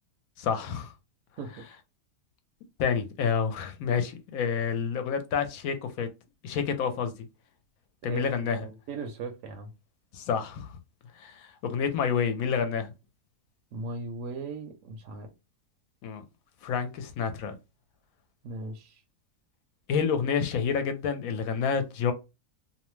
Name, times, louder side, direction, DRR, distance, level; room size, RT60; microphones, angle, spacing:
voice 1, 0.4-0.9 2.8-6.1 6.4-7.1 8.0-8.7 10.1-10.7 11.2-12.9 16.0-16.2 16.6-17.5 19.9-22.1, left 6 dB, 75° left, 1.0 m, -28 dB
voice 2, 8.6-9.7 13.7-15.3 18.4-19.0, right 3 dB, 65° right, 0.9 m, -38 dB
2.7 x 2.0 x 3.0 m
omnidirectional pair, 1.6 m